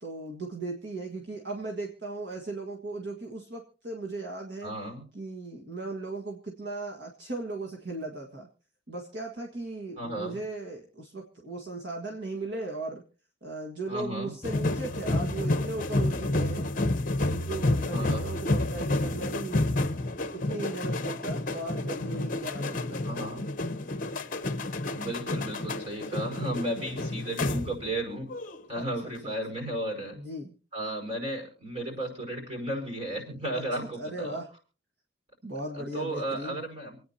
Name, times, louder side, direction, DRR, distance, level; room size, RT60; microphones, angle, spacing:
voice 1, 0.0-4.7 5.1-8.5 8.9-13.0 13.4-16.7 17.2-19.6 20.3-23.0 28.8-28.9 29.2-29.3 30.1-30.5 33.5-34.5 35.4-36.6, right 2 dB, 60° right, 1 dB, 1.8 m, -37 dB
voice 2, 4.6-5.0 10.0-10.4 13.9-14.3 17.9-18.4 23.0-23.4 24.9-28.3 28.7-30.2 30.7-34.4 35.7-37.0, right 1 dB, 35° right, 1 dB, 5.6 m, -34 dB
sound 1, 14.4-28.0 28.3-28.6, left 2 dB, 45° left, 0.9 m, -30 dB
28.0 x 9.4 x 2.8 m, 0.37 s
head